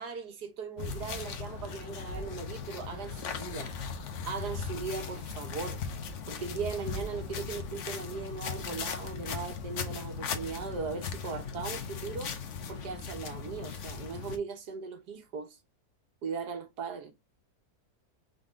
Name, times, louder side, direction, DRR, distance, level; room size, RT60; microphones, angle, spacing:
voice 1, 0.0-3.7 4.3-5.8 6.3-12.3 12.7-15.6 16.2-17.1, right 5 dB, 80° right, 1.8 m, -38 dB
sound 1, 0.8-14.4, left 5 dB, 55° left, 1.0 m, -38 dB
5.2 x 3.6 x 2.4 m
omnidirectional pair, 1.7 m